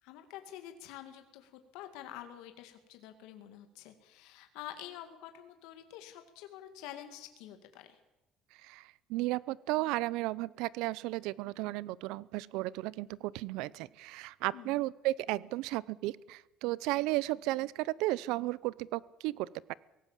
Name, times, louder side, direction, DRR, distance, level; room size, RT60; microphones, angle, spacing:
voice 1, 0.0-8.0 14.5-14.8, left 12 dB, 85° left, 7 dB, 2.1 m, -48 dB
voice 2, 8.6-19.7, right 18 dB, 80° right, 22 dB, 0.7 m, -34 dB
23.5 x 18.0 x 7.4 m, 1.0 s
cardioid pair, 150°, 0 cm